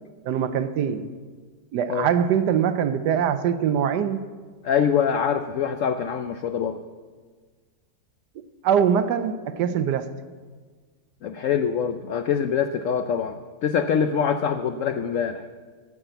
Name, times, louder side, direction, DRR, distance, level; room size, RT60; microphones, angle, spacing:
voice 1, 0.3-1.1 1.7-4.3 8.6-10.1, right 8 dB, 70° right, 11 dB, 1.2 m, -23 dB
voice 2, 4.6-6.8 11.2-15.5, left 7 dB, 80° left, 8 dB, 0.7 m, -24 dB
9.8 x 8.7 x 7.8 m, 1.5 s
omnidirectional pair, 2.0 m